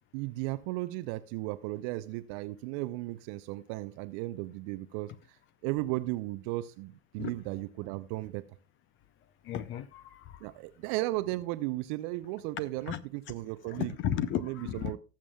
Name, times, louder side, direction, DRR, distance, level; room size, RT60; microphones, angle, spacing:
voice 1, 0.1-5.4 5.6-8.4 10.4-14.0 14.3-15.0, right 18 dB, 30° right, 0.4 m, -35 dB
voice 2, 9.5-10.2 12.9-13.0 13.7-14.9, left 11 dB, 25° left, 0.5 m, -33 dB
18.5 x 7.4 x 2.2 m
figure-of-eight pair, 90°, 49 cm